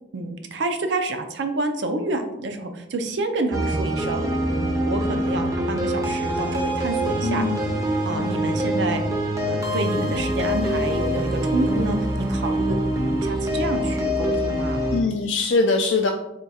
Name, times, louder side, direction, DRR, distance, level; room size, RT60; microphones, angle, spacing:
voice 1, 0.1-4.2 4.8-7.5 8.0-9.0 9.4-14.8, right 2 dB, 75° right, 6 dB, 0.5 m, -28 dB
sound 1, 3.5-15.0, equal, 20° right, 0.5 m, -24 dB
voice 2, 7.2-7.7 14.9-16.1, left 3 dB, 85° left, 2 dB, 0.4 m, -22 dB
3.6 x 2.3 x 4.1 m, 0.87 s
head